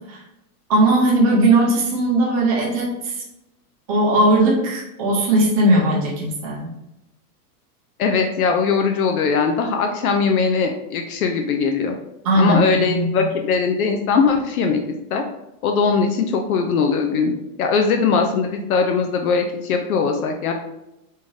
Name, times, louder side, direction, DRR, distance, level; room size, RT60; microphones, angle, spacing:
voice 1, 0.7-3.1 3.9-6.7 12.2-13.1, right 1 dB, 25° right, -4 dB, 0.5 m, -18 dB
voice 2, 8.0-11.9 12.4-14.8 15.1-15.2 15.6-17.3 17.6-20.5, left 5 dB, 65° left, 4 dB, 0.5 m, -20 dB
3.6 x 3.3 x 2.6 m, 0.89 s
supercardioid pair, 180°, 48 cm